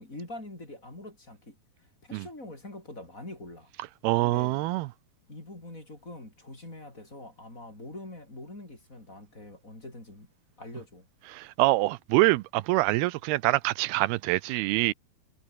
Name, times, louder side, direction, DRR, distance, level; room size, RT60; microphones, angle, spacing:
voice 1, 0.0-1.6 2.0-3.7 4.2-4.6 5.3-10.3 10.6-11.0, left 2 dB, 20° left, 6.0 m, -44 dB
voice 2, 4.0-4.9 11.4-14.9, right 19 dB, 85° right, 2.6 m, -25 dB
omnidirectional pair, 4.4 m